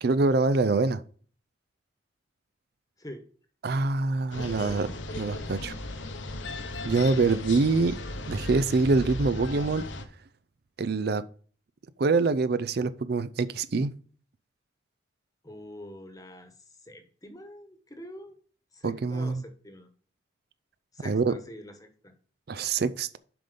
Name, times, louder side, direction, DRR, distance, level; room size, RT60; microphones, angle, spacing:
voice 1, 0.0-1.0 3.6-4.9 5.2-5.7 6.8-7.9 8.3-9.8 10.8-11.2 12.0-13.9 18.8-19.4 21.1-21.3 22.5-23.2, right 3 dB, 55° right, 0.4 m, -25 dB
sound 1, 4.3-10.1, left 2 dB, 70° left, 1.1 m, -36 dB
voice 2, 4.4-4.8 15.4-18.4 18.7-19.9 20.9-22.1, equal, 20° left, 1.2 m, -45 dB
7.7 x 5.4 x 5.1 m
head